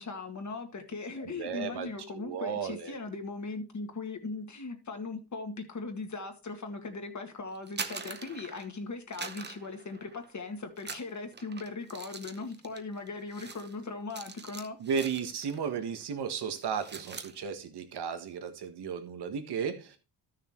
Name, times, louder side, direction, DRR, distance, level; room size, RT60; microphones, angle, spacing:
voice 1, 0.0-14.8, left 3 dB, 45° left, 1.9 m, -39 dB
voice 2, 1.2-2.9 14.8-20.0, right 6 dB, 80° right, 1.5 m, -34 dB
sound 1, 7.5-8.8 9.1-10.4 10.8-15.7 16.0-16.2 16.5-17.3, right 5 dB, 25° right, 0.8 m, -43 dB
13.0 x 6.6 x 3.1 m
cardioid pair, 100°, 39 cm